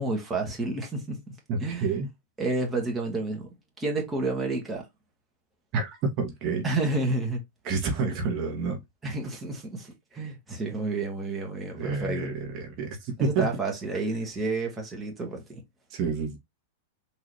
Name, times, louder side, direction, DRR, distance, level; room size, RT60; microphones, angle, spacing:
voice 1, 0.0-1.9 2.4-3.5 3.8-4.8 6.6-7.4 9.0-12.3 13.2-15.6, right 2 dB, 15° right, 1.4 m, -30 dB
voice 2, 1.5-2.1 5.7-5.9 6.2-6.6 7.6-8.8 11.7-13.5 15.9-16.4, right 4 dB, 45° right, 1.2 m, -29 dB
3.8 x 2.7 x 3.2 m
hypercardioid pair, 120°, 0 cm